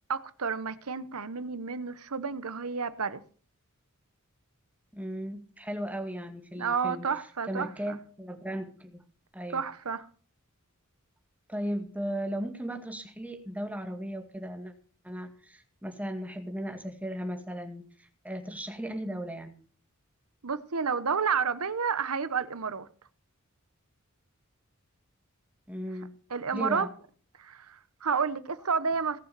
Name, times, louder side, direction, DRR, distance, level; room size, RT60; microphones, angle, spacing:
voice 1, 0.1-3.2 6.6-8.0 9.5-10.1 20.4-22.9 26.3-26.9 27.4-29.2, right 5 dB, 90° right, 1.0 m, -30 dB
voice 2, 4.9-7.1 7.5-9.0 9.3-9.6 11.5-14.7 15.0-17.9 18.2-19.6 25.7-26.2 26.5-26.9, equal, 5° right, 2.0 m, -36 dB
18.0 x 6.6 x 6.9 m
head